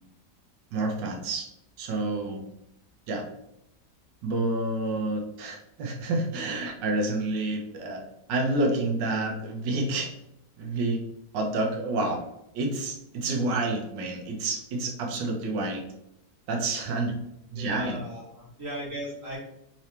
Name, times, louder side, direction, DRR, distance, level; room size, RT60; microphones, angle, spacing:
voice 1, 0.7-1.5 1.8-2.4 3.1-3.3 4.2-8.0 8.3-10.1 10.6-11.0 11.3-12.2 12.5-15.8 16.5-17.1 17.5-18.0, right 2 dB, 90° right, 2 dB, 1.4 m, -29 dB
voice 2, 17.5-19.4, equal, 50° right, -5 dB, 1.4 m, -37 dB
3.8 x 2.9 x 3.2 m, 0.82 s
omnidirectional pair, 1.8 m